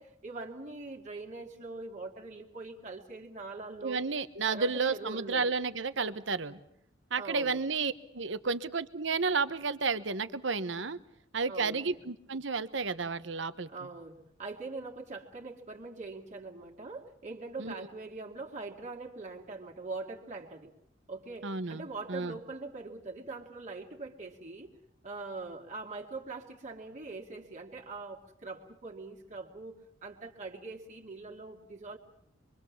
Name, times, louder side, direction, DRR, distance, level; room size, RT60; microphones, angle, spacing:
voice 1, 0.0-4.0 4.5-5.5 7.2-7.6 11.5-12.0 13.7-20.7 21.1-24.7 25.0-32.0, right 3 dB, 40° right, -1 dB, 2.5 m, -42 dB
voice 2, 3.8-6.6 7.1-11.0 11.3-13.7 17.6-17.9 21.4-22.3, right 4 dB, 70° right, 13 dB, 1.3 m, -32 dB
26.0 x 23.5 x 7.4 m, 0.74 s
head